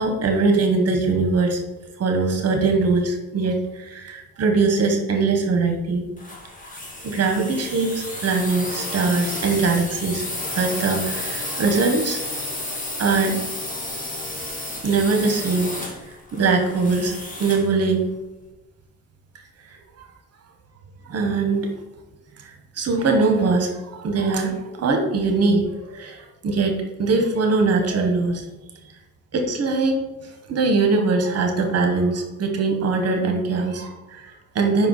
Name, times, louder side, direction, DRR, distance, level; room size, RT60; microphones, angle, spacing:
voice 1, 0.0-1.6 2.0-6.0 7.0-10.2 10.5-12.2 13.0-13.4 14.8-15.7 16.3-18.0 21.1-21.7 22.4-26.7 27.0-28.4 29.3-34.9, right 3 dB, 55° right, 4 dB, 1.2 m, -22 dB
sound 1, 6.2-17.7, left 1 dB, 25° left, 1.7 m, -31 dB
5.4 x 4.6 x 4.0 m, 1.0 s
cardioid pair, 90°, 30 cm